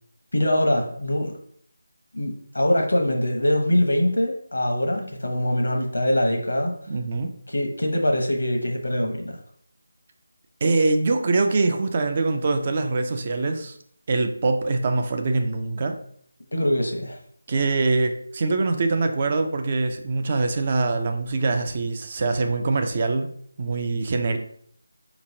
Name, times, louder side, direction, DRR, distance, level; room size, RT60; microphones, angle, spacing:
voice 1, 0.3-1.3 2.1-6.7 7.5-9.4 16.5-17.2, left 1 dB, 80° left, 3 dB, 0.9 m, -23 dB
voice 2, 6.9-7.3 10.6-13.8 14.1-16.0 17.5-23.3 23.6-24.4, right 3 dB, 35° right, 5 dB, 0.4 m, -23 dB
4.2 x 3.0 x 2.6 m, 0.63 s
figure-of-eight pair, 165°, 0 cm